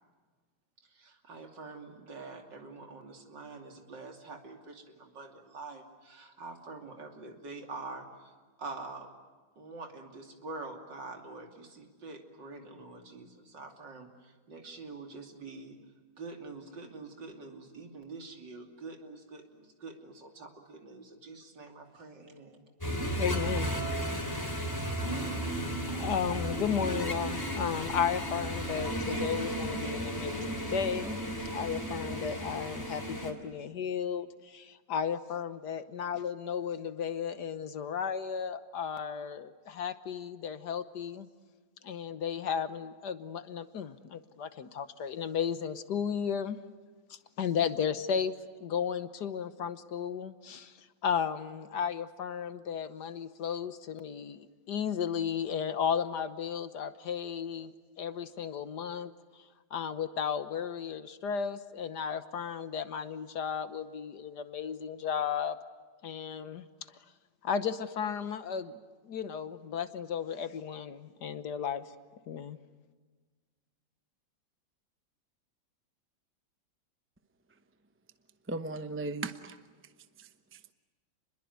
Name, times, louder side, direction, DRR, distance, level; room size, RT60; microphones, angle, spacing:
voice 1, 0.8-9.1 9.6-15.8 16.2-22.7, right 3 dB, 65° right, 4 dB, 3.5 m, -46 dB
sound 1, 22.8-33.3, right 1 dB, 10° left, 3.2 m, -34 dB
voice 2, 23.1-23.8 24.4-24.5 25.8-31.2 31.5-41.3 41.8-46.6 47.1-48.3 48.6-50.8 51.0-57.7 58.0-59.1 59.7-65.6 66.0-66.7 67.4-68.8 69.0-71.8 72.3-72.6, left 7 dB, 65° left, 12 dB, 1.5 m, -34 dB
voice 3, 78.5-79.6 80.2-80.7, right 3 dB, 15° right, 9 dB, 0.4 m, -37 dB
29.0 x 21.5 x 9.5 m, 1.4 s
omnidirectional pair, 2.1 m